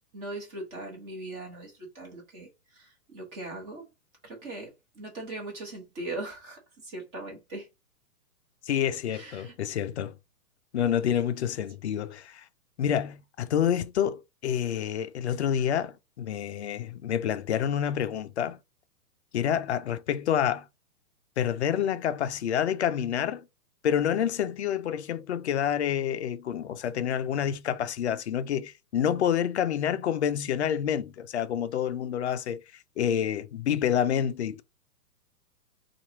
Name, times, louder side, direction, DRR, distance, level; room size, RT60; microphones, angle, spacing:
voice 1, 0.1-3.9 4.2-7.7 9.1-9.6, right 2 dB, 20° right, 1.2 m, -40 dB
voice 2, 8.7-10.2 10.7-12.4 12.8-18.6 19.3-20.6 21.4-23.5 23.8-32.6 33.0-34.6, left 9 dB, 50° left, 0.4 m, -28 dB
4.4 x 2.4 x 2.9 m
hypercardioid pair, 160°, 46 cm